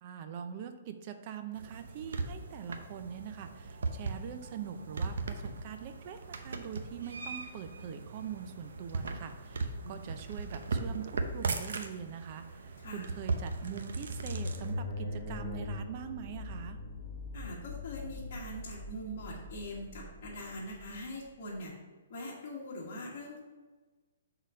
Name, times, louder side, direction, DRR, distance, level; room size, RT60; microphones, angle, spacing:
voice 1, 0.0-16.8, right 8 dB, 35° right, 8 dB, 0.4 m, -43 dB
sound 1, 1.5-14.7, right 3 dB, 80° right, 0.7 m, -38 dB
sound 2, 13.6-21.5, left 2 dB, 5° left, 2.2 m, -41 dB
voice 2, 17.3-21.7 22.1-23.4, left 1 dB, 40° left, -5 dB, 1.6 m, -42 dB
6.2 x 4.0 x 5.2 m, 1.3 s
hypercardioid pair, 165°, 0 cm